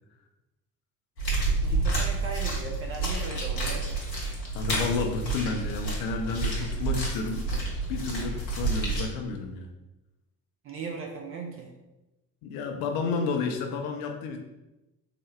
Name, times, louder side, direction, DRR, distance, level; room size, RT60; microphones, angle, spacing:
sound 1, 1.2-9.0, right 3 dB, 85° left, 0.8 m, -29 dB
voice 1, 1.6-3.9 10.6-11.7, right 4 dB, 30° right, 1 dB, 0.4 m, -37 dB
voice 2, 4.5-9.7 12.4-14.4, left 4 dB, 45° left, 3 dB, 0.5 m, -31 dB
3.7 x 2.1 x 3.2 m, 1.0 s
figure-of-eight pair, 55°, 50 cm